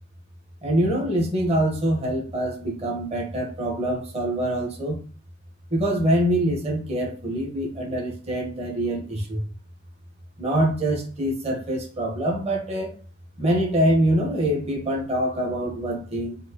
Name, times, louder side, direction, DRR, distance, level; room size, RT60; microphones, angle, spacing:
voice 1, 0.6-5.0 5.7-9.4 10.4-13.0 13.4-16.4, right 1 dB, 30° right, -1 dB, 1.3 m, -24 dB
5.6 x 2.8 x 3.0 m, 0.37 s
head